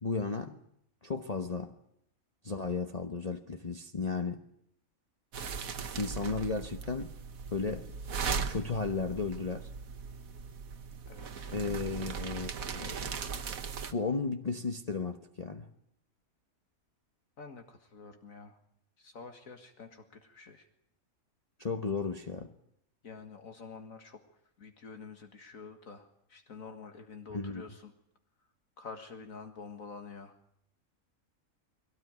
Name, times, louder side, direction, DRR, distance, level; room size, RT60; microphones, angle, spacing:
voice 1, 0.0-0.6 1.0-1.7 2.4-4.4 6.0-7.1 7.5-7.9 8.5-9.7 11.5-13.2 13.9-15.7 21.6-22.5 27.3-27.6, left 4 dB, 30° left, 6 dB, 1.0 m, -34 dB
sound 1, 5.3-13.9, right 5 dB, 75° right, 1.6 m, -38 dB
voice 2, 11.1-11.6 17.4-18.6 19.0-20.7 23.0-24.2 24.6-27.9 28.8-30.3, left 4 dB, 70° left, 6 dB, 2.2 m, -48 dB
22.0 x 18.0 x 9.4 m, 0.73 s
omnidirectional pair, 1.5 m